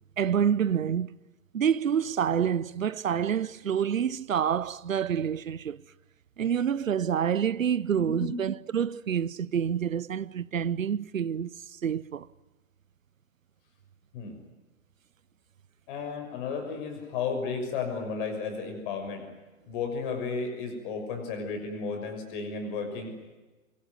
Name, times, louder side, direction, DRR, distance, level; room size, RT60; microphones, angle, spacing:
voice 1, 0.2-1.1 1.5-5.8 6.4-11.5 11.8-12.3, right 8 dB, 70° right, 0.8 m, -27 dB
voice 2, 8.0-8.3 14.1-14.3 15.9-19.2 19.7-23.1, left 5 dB, 35° left, 6.4 m, -33 dB
24.5 x 23.5 x 9.6 m
figure-of-eight pair, 115°, 42 cm